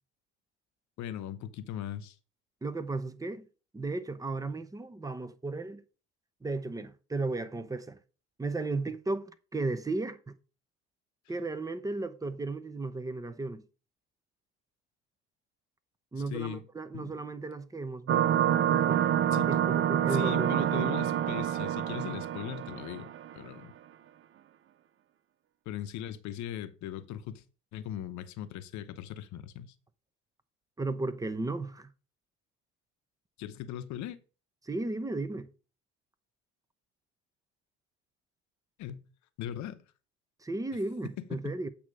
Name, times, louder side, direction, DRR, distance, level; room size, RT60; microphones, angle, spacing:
voice 1, 1.0-2.2 16.3-16.7 16.9-17.2 19.3-19.5 20.1-23.7 25.7-27.4 27.7-29.7 33.4-34.2 38.8-39.0 39.4-39.8 41.2-41.5, left 11 dB, 65° left, 0.8 m, -39 dB
voice 2, 2.6-3.5 3.7-5.8 6.4-8.0 8.4-10.2 11.3-13.6 16.1-19.0 19.5-21.0 30.8-31.9 34.6-35.5 40.4-41.7, right 3 dB, 10° right, 0.8 m, -35 dB
sound 1, 18.1-23.3, right 10 dB, 40° right, 0.5 m, -27 dB
8.3 x 3.0 x 6.2 m
supercardioid pair, 80°, 31 cm